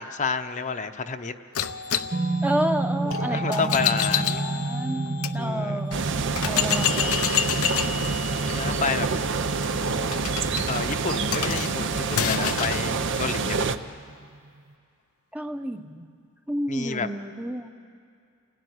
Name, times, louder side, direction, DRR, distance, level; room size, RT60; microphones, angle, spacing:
voice 1, 0.0-1.3 3.3-4.5 5.4-5.8 8.5-9.1 10.7-13.7 16.7-17.1, left 5 dB, 35° left, 7 dB, 0.9 m, -30 dB
sound 1, 1.5-5.3 5.9-6.0 6.4-12.9, left 9 dB, 80° left, 0.9 m, -29 dB
sound 2, 2.1-14.7, right 2 dB, 35° right, 0.6 m, -32 dB
voice 2, 2.4-6.0 6.4-7.3 15.3-16.1 16.5-17.7, right 1 dB, 5° right, 5 dB, 0.9 m, -31 dB
sound 3, 5.9-13.8, right 4 dB, 60° right, 0.8 m, -27 dB
28.5 x 18.0 x 9.6 m, 2.3 s
head